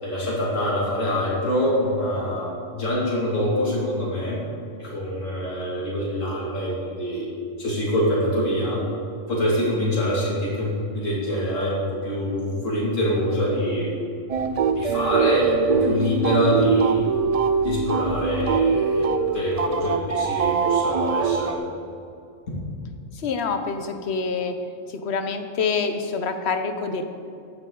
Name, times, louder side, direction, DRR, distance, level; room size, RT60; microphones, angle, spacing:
voice 1, 0.0-4.4 4.8-7.3 7.6-8.8 9.3-13.9 14.7-17.0 17.6-19.1 19.3-21.6, equal, 80° left, -5 dB, 2.8 m, -25 dB
sound 1, 14.3-21.5, right 5 dB, 65° right, 0.3 m, -23 dB
voice 2, 23.1-24.6 24.9-27.0, left 5 dB, 60° left, 7 dB, 1.1 m, -26 dB
15.0 x 9.8 x 3.8 m, 2.5 s
omnidirectional pair, 1.3 m